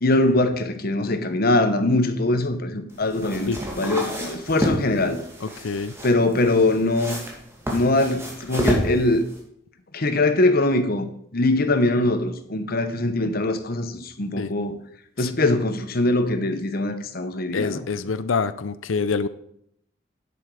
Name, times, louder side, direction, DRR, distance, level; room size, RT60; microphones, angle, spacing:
voice 1, 0.0-5.2 6.0-7.2 7.7-9.2 9.9-11.1 11.3-14.7 15.2-17.8, left 2 dB, 50° left, 1.0 m, -22 dB
sound 1, 2.9-9.4, equal, 15° right, 2.2 m, -30 dB
voice 2, 5.4-5.9 14.4-14.5 15.2-15.3 17.5-19.3, left 5 dB, 80° left, 0.6 m, -26 dB
10.0 x 7.9 x 4.8 m
head